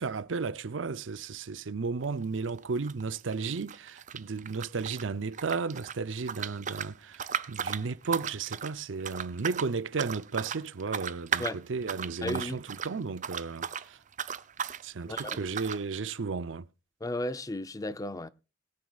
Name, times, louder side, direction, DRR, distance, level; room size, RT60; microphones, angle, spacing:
voice 1, 0.0-14.0 14.8-16.7, right 4 dB, 90° right, 0.6 m, -34 dB
sound 1, 2.0-2.2 2.5-5.0 5.3-13.9 14.1-14.8 15.2-15.8, right 8 dB, 40° right, 0.6 m, -36 dB
voice 2, 12.2-12.6 15.1-15.4 17.0-18.3, left 1 dB, 20° left, 0.5 m, -34 dB
21.5 x 9.4 x 2.4 m
head